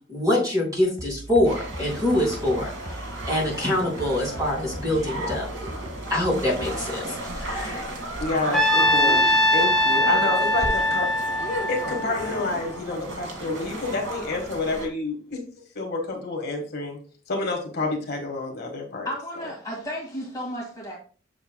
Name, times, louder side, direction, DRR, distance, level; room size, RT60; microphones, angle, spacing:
voice 1, 0.1-2.7 3.3-5.5 6.1-7.0 7.4-7.8, left 1 dB, 20° right, -4 dB, 3.6 m, -24 dB
sound 1, 1.0-7.0, right 1 dB, 35° right, 0.9 m, -39 dB
sound 2, 1.4-14.9, right 1 dB, 85° right, 1.9 m, -34 dB
voice 2, 8.2-9.2 9.5-11.1 11.7-15.4 15.7-17.0 17.3-19.1, left 2 dB, 55° left, 1 dB, 1.5 m, -28 dB
Trumpet, 8.5-12.8, left 1 dB, 5° left, 1.0 m, -22 dB
voice 3, 19.0-21.0, equal, 20° left, -3 dB, 2.0 m, -33 dB
7.1 x 7.0 x 2.2 m, 0.41 s
head